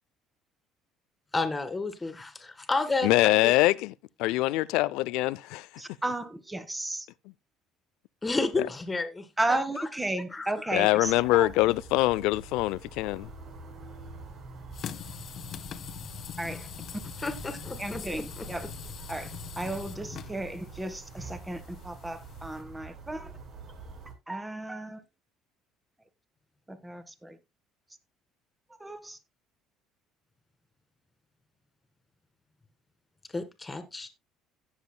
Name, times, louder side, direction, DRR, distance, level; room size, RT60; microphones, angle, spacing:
voice 1, 1.3-3.5 8.2-9.3 10.3-10.5 17.2-18.0 33.3-34.1, left 3 dB, 15° left, 1.9 m, -31 dB
voice 2, 3.0-3.9 4.2-5.7 8.6-8.7 10.7-13.3, left 18 dB, 85° left, 0.4 m, -24 dB
voice 3, 5.8-7.1 9.4-11.5 16.4-16.7 17.8-18.7 19.1-23.3 24.3-25.0 26.7-27.4 28.8-29.2, right 2 dB, 10° right, 1.5 m, -34 dB
sound 1, 11.0-24.1, right 4 dB, 55° right, 4.2 m, -46 dB
sound 2, 14.7-22.6, left 9 dB, 50° left, 1.0 m, -43 dB
16.5 x 7.3 x 2.2 m
cardioid pair, 110°, 0 cm